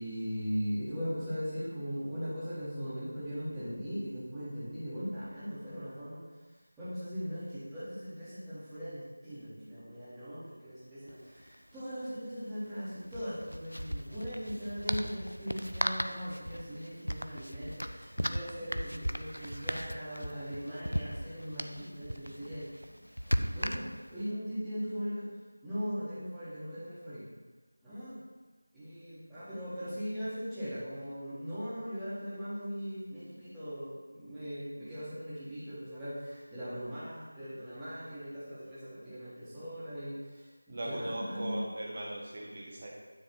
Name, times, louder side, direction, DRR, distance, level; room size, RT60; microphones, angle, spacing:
voice 1, 0.0-6.2 6.5-25.2 25.6-27.3 27.8-28.2 28.7-41.6, equal, 5° right, -17 dB, 1.7 m, -39 dB
sound 1, 11.1-11.2 11.4-11.6 13.0-24.2, equal, 90° right, 0.5 m, -37 dB
voice 2, 40.7-42.9, right 1 dB, 30° right, -3 dB, 1.2 m, -38 dB
9.7 x 3.8 x 4.6 m, 1.4 s
figure-of-eight pair, 170°, 0 cm